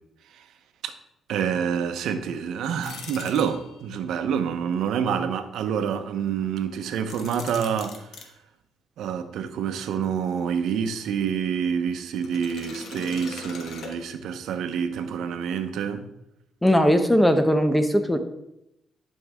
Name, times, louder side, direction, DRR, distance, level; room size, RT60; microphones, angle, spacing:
voice 1, 1.3-7.9 9.0-16.0, right 7 dB, 80° right, 8 dB, 0.9 m, -27 dB
sound 1, 2.8-4.0 7.0-8.3 12.2-14.5, left 5 dB, 70° left, 1.2 m, -41 dB
voice 2, 16.6-18.2, equal, 10° left, 8 dB, 0.9 m, -19 dB
11.0 x 5.5 x 3.6 m, 0.82 s
cardioid pair, 90°, 0 cm